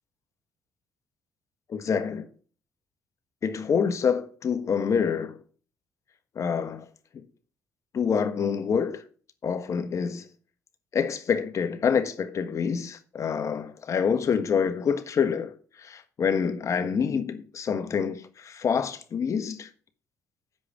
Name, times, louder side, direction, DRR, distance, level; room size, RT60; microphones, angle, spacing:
voice 1, 1.7-2.3 3.4-5.4 6.3-6.8 7.1-7.2 7.9-9.0 9.4-10.2 10.9-15.5 15.8-19.7, left 6 dB, 50° left, 1.3 m, -27 dB
7.7 x 5.1 x 7.5 m
cardioid pair, 80°, 7 cm